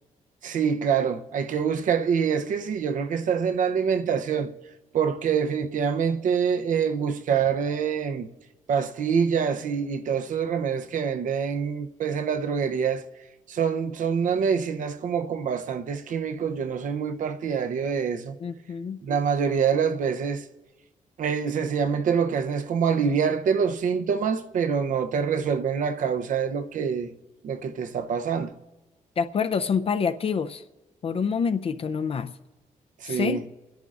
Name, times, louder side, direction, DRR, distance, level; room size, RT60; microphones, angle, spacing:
voice 1, 0.4-4.5 4.9-8.3 8.7-13.0 13.5-18.4 19.0-20.4 21.2-27.1 27.4-28.5 33.0-33.4, right 6 dB, 75° right, 0.7 m, -25 dB
voice 2, 18.4-19.0 29.2-30.6 31.0-32.3 33.1-33.4, left 6 dB, 45° left, 0.5 m, -27 dB
29.0 x 10.5 x 2.5 m
wide cardioid pair, 130°, 13 cm